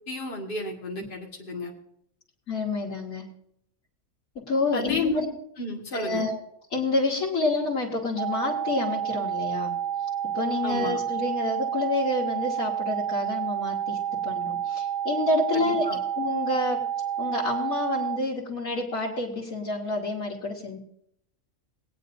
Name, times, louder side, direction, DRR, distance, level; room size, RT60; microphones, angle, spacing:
voice 1, 0.1-1.7 4.7-5.3 5.6-6.3 10.6-11.0 15.5-16.0, left 3 dB, 40° left, -2 dB, 2.1 m, -32 dB
voice 2, 2.5-3.3 4.4-5.3 5.9-6.4 6.7-9.7 10.3-14.0 14.2-16.9 17.2-20.8, left 2 dB, 85° left, -7 dB, 2.5 m, -28 dB
sound 1, 8.2-18.2, right 9 dB, 70° right, 0.4 m, -30 dB
21.0 x 9.2 x 2.7 m, 0.70 s
omnidirectional pair, 1.4 m